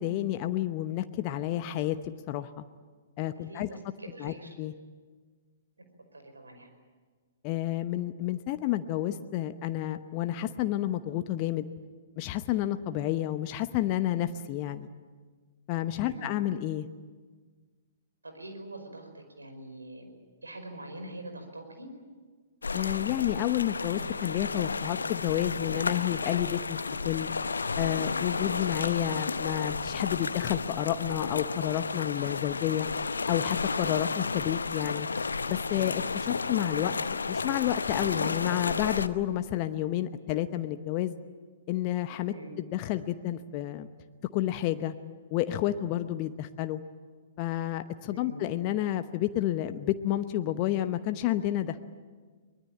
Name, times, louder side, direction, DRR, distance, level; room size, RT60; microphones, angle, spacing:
voice 1, 0.0-2.6 3.2-3.7 4.2-4.7 7.4-11.7 12.2-14.9 15.7-16.9 22.7-27.3 27.8-32.9 33.3-35.1 35.5-36.9 37.3-41.1 41.7-43.9 44.3-44.9 45.3-46.8 47.4-51.8, left 13 dB, 35° left, 10 dB, 0.9 m, -30 dB
voice 2, 3.3-4.5 6.1-6.7 16.0-16.4 18.2-20.1 20.4-21.9 28.3-28.5 33.7-34.1 42.2-42.6 48.1-48.6, right 1 dB, 80° right, 6 dB, 5.1 m, -44 dB
sound 1, 22.6-39.1, left 4 dB, 70° left, 0.8 m, -32 dB
23.5 x 21.0 x 8.9 m, 1.5 s
figure-of-eight pair, 115°, 0 cm